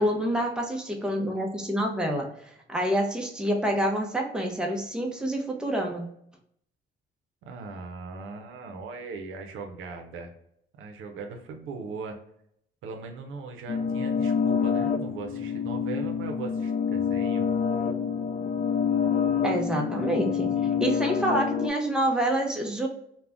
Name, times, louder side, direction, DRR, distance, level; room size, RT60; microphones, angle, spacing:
voice 1, 0.0-6.1 19.4-22.9, right 1 dB, 5° right, 1 dB, 0.6 m, -27 dB
voice 2, 7.4-10.3 10.8-12.2 12.8-17.5, right 4 dB, 90° right, 4 dB, 0.5 m, -39 dB
sound 1, 13.7-21.7, left 7 dB, 45° left, 0.4 m, -27 dB
2.4 x 2.1 x 3.4 m, 0.72 s
cardioid pair, 90°, 20 cm